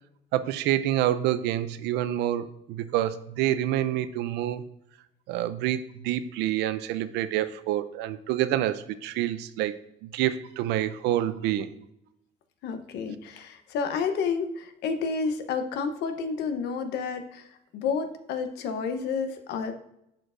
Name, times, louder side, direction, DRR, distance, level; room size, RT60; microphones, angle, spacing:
voice 1, 0.3-4.6 5.3-11.7, right 12 dB, 90° right, 14 dB, 0.5 m, -27 dB
voice 2, 12.6-17.5 17.7-19.7, left 5 dB, 80° left, 8 dB, 0.8 m, -30 dB
11.0 x 4.5 x 2.5 m, 0.81 s
cardioid pair, 110°, 17 cm